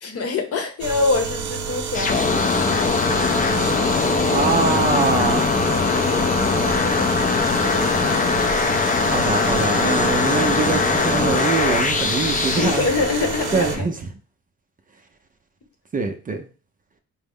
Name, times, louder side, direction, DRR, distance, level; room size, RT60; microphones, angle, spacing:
voice 1, 0.0-2.3 6.8-8.2 12.6-13.8, left 3 dB, 50° left, 5 dB, 0.9 m, -25 dB
sound 1, 0.8-13.8, right 6 dB, 85° right, 0.6 m, -29 dB
sound 2, 1.9-13.8, left 4 dB, 25° left, 0.5 m, -21 dB
voice 2, 4.3-5.5 9.1-12.9 13.5-13.9 15.9-16.5, right 4 dB, 30° right, 5 dB, 0.5 m, -23 dB
4.4 x 2.0 x 3.6 m, 0.38 s
cardioid pair, 90°, 30 cm